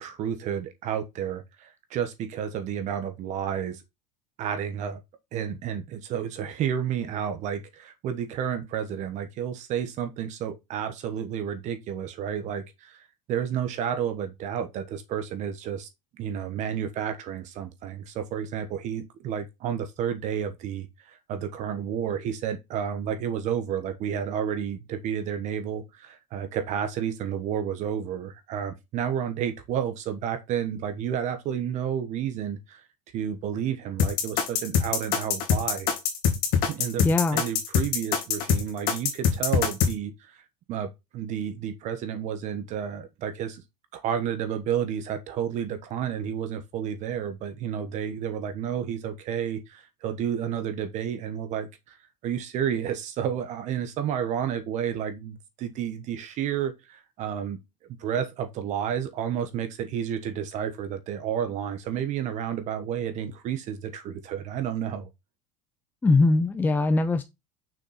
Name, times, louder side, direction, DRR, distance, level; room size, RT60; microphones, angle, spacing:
voice 1, 0.0-3.8 4.4-5.0 5.3-15.9 16.2-32.8 33.1-35.9 36.6-37.0 37.3-40.4 40.7-43.6 43.9-52.0 52.2-57.6 58.0-65.1, right 9 dB, 45° right, 1.1 m, -31 dB
sound 1, 34.0-39.9, left 7 dB, 60° left, 2.0 m, -23 dB
voice 2, 37.0-37.4 66.0-67.2, left 3 dB, 10° left, 0.5 m, -21 dB
6.3 x 4.2 x 4.1 m
supercardioid pair, 130°, 16 cm